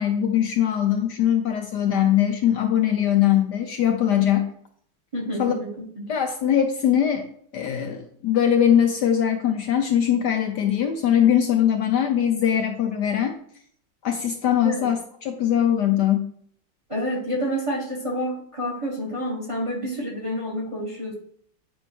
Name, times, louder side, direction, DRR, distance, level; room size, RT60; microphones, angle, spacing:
voice 1, 0.0-4.5 5.4-5.6 6.1-7.3 7.5-13.4 14.0-16.3, left 10 dB, 70° left, 4 dB, 1.1 m, -21 dB
voice 2, 5.1-6.1 14.6-14.9 16.9-21.1, equal, 20° right, -2 dB, 1.1 m, -29 dB
9.0 x 5.4 x 2.9 m, 0.62 s
omnidirectional pair, 2.2 m